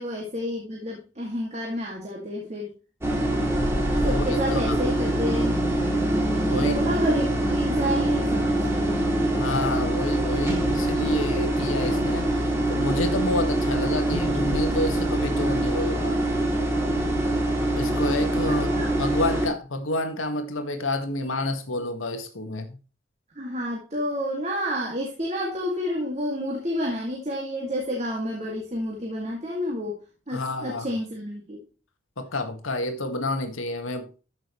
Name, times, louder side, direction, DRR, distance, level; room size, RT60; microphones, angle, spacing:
voice 1, 0.0-2.7 4.0-5.6 6.5-9.0 18.5-18.9 23.4-29.9 30.3-31.6, equal, 35° right, 2.2 m, -30 dB
sound 1, 3.0-19.5, right 1 dB, 15° right, 2.7 m, -24 dB
voice 2, 4.0-4.8 6.4-6.8 9.3-12.3 12.7-16.2 17.7-18.7 19.0-22.8 30.3-30.9 32.2-34.2, left 1 dB, 90° left, 1.7 m, -29 dB
13.5 x 6.3 x 3.1 m
head